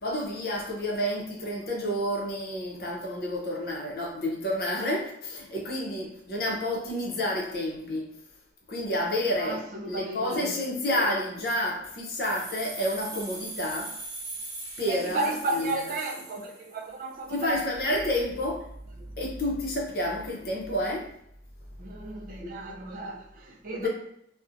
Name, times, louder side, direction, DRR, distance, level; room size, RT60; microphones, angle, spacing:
voice 1, 0.0-8.1 8.7-13.9 14.8-15.8 17.3-18.7 19.2-21.1 23.8-23.9, left 1 dB, 55° left, 0.6 m, -30 dB
voice 2, 9.3-10.6 14.9-17.5 17.9-18.0 19.0-19.1 21.8-23.9, right 2 dB, 50° right, 0.4 m, -34 dB
sound 1, 12.2-17.0, right 2 dB, 20° right, 0.9 m, -40 dB
2.5 x 2.1 x 2.5 m
head